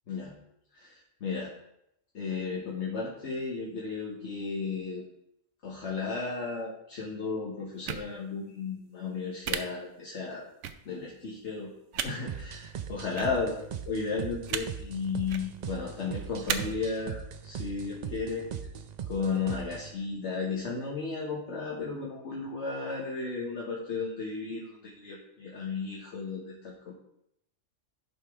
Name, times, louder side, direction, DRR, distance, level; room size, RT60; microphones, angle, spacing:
voice 1, 0.7-1.5 2.1-5.0 5.6-10.5 10.8-18.5 19.0-26.9, left 4 dB, 65° left, -3 dB, 1.4 m, -34 dB
sound 1, 7.8-8.0 9.4-9.6 10.6-10.7 11.9-12.1 13.1-13.3 14.5-14.6 15.2-15.4 16.5-16.6, right 9 dB, 75° right, 0.9 m, -32 dB
sound 2, 12.3-19.9, right 8 dB, 55° right, 0.5 m, -40 dB
11.5 x 5.1 x 3.5 m, 0.78 s
omnidirectional pair, 1.3 m